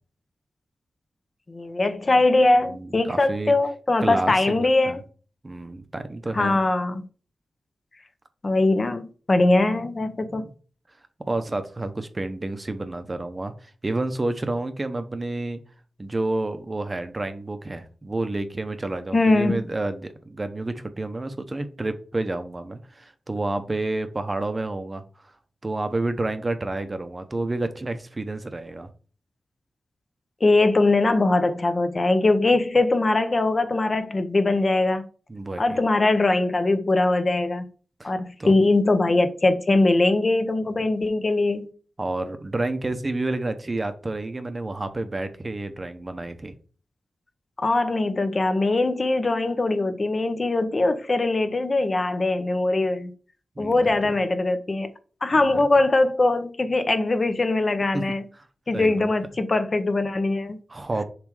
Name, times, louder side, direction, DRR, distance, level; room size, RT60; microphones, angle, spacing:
voice 1, 1.5-5.0 6.3-7.0 8.4-10.5 19.1-19.7 30.4-35.0 35.6-37.6 38.0-41.7 47.6-53.1 53.6-54.9 55.2-58.2 58.7-60.6, left 2 dB, 35° left, 0.7 m, -21 dB
voice 2, 2.7-3.5 4.0-5.0 5.4-6.6 10.3-10.5 11.2-15.6 16.0-25.3 25.6-28.9 35.3-35.8 38.0-38.1 38.4-38.6 42.0-46.5 53.6-54.1 55.4-55.6 57.9-58.0 58.3-58.5 58.7-59.1 60.7-61.0, right 2 dB, 25° right, 0.8 m, -30 dB
7.1 x 3.3 x 4.8 m
wide cardioid pair, 140°, 0 cm